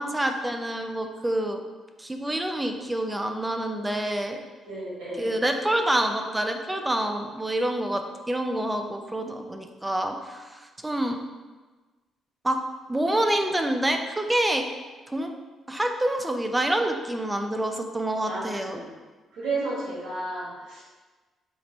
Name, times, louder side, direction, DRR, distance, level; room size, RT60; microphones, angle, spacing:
voice 1, 0.0-1.6 2.0-4.4 5.2-11.2 12.4-12.6 12.9-14.6 15.1-15.3 15.7-18.8, right 1 dB, 10° right, 5 dB, 0.4 m, -27 dB
voice 2, 4.7-5.3 18.3-18.9 19.3-20.9, right 2 dB, 85° right, -5 dB, 1.1 m, -32 dB
4.4 x 2.1 x 3.9 m, 1.3 s
cardioid pair, 90°, 0 cm